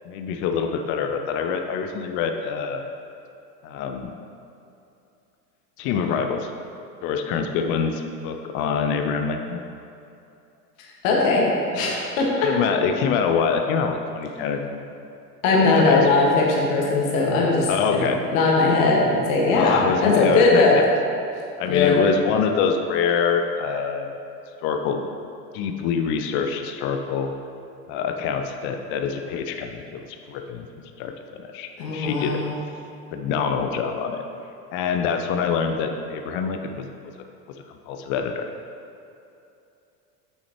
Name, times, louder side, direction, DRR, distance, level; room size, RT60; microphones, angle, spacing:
voice 1, 0.1-2.8 3.6-4.1 5.8-6.5 7.0-9.6 12.4-14.8 15.5-16.1 17.7-18.2 19.5-20.8 21.6-24.2 24.6-25.0 25.5-27.3 27.9-30.0 30.3-30.7 31.0-32.4 33.1-34.2 34.7-36.9 37.9-38.5, left 6 dB, 25° left, 5 dB, 0.4 m, -25 dB
voice 2, 11.0-11.4 11.7-12.5 15.4-18.0 18.3-20.7 21.7-22.0 31.8-32.5, left 3 dB, 55° left, -3 dB, 1.7 m, -19 dB
8.6 x 6.2 x 3.0 m, 2.7 s
figure-of-eight pair, 80°, 49 cm